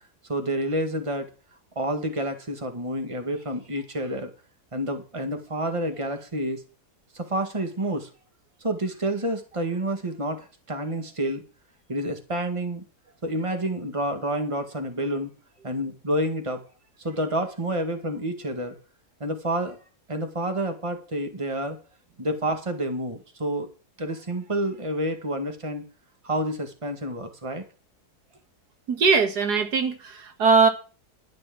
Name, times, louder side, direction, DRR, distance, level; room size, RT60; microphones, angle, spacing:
voice 1, 0.3-1.3 1.8-4.3 4.7-6.6 7.1-8.1 8.6-11.4 11.9-12.8 13.2-15.3 15.6-16.6 17.0-18.8 19.2-19.8 20.1-21.8 22.2-23.7 24.0-25.9 26.2-27.7, right 1 dB, 20° right, 1.9 m, -29 dB
voice 2, 28.9-30.7, right 5 dB, 85° right, 2.2 m, -20 dB
12.0 x 6.3 x 7.6 m
omnidirectional pair, 1.7 m